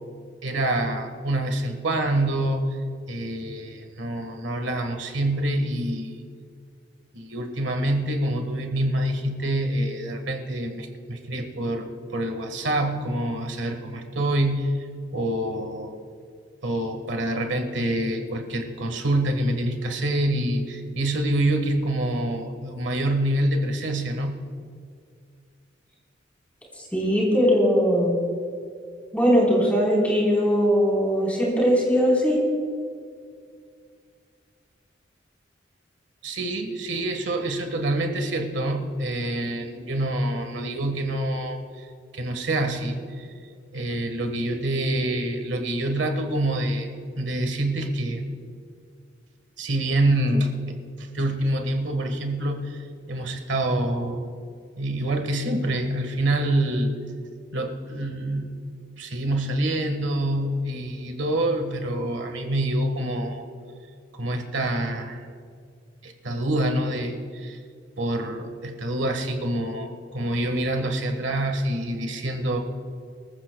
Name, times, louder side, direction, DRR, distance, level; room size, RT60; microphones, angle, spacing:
voice 1, 0.4-2.7 3.1-6.1 7.1-14.8 15.1-15.9 16.6-24.4 36.2-41.8 42.1-43.3 43.7-46.9 47.2-48.2 49.6-50.5 51.0-52.8 53.1-54.3 54.8-57.0 57.5-58.6 59.0-63.5 64.1-65.2 66.0-67.6 68.0-72.6, right 1 dB, 85° right, 5 dB, 1.5 m, -26 dB
voice 2, 26.9-28.2 29.1-32.4, equal, 10° left, -4 dB, 4.1 m, -20 dB
24.0 x 14.5 x 2.3 m, 2.2 s
head